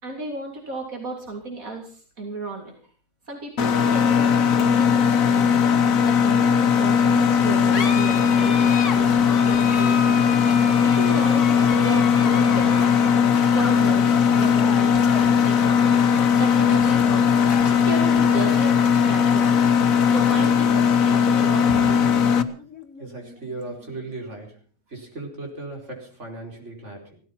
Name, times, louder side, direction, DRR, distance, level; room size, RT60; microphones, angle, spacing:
voice 1, 0.0-2.7 3.3-5.6 6.0-9.1 9.4-10.0 10.3-10.5 10.8-13.0 13.5-15.2 15.4-15.8 16.4-19.4 20.1-22.1, right 3 dB, 85° right, 1 dB, 3.8 m, -33 dB
Mechanisms, 3.6-22.4, left 7 dB, 80° left, 1.6 m, -19 dB
sound 1, 7.3-24.3, left 4 dB, 65° left, 2.0 m, -35 dB
voice 2, 23.0-24.6 24.9-27.2, right 2 dB, 55° right, 1 dB, 5.0 m, -37 dB
17.0 x 13.5 x 5.8 m, 0.41 s
omnidirectional pair, 1.4 m